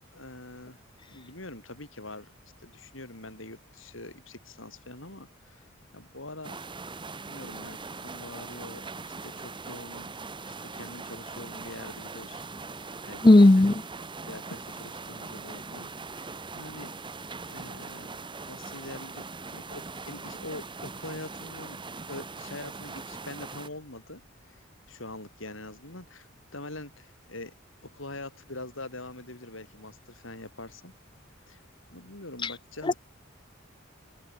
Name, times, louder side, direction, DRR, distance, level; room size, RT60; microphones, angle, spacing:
voice 1, 0.1-0.8 1.1-2.3 2.6-5.6 5.9-6.6 7.3-10.1 10.5-12.4 12.8-13.5 14.2-16.9 17.4-18.2 18.5-19.3 19.5-21.8 22.1-27.5 27.8-30.9 31.5-31.6 31.9-33.0, left 2 dB, 70° left, 6.7 m, -44 dB
sound 1, 6.4-23.7, right 4 dB, 25° right, 1.3 m, -41 dB
voice 2, 13.2-13.7 32.9-33.0, left 2 dB, 25° left, 0.6 m, -15 dB
open air
head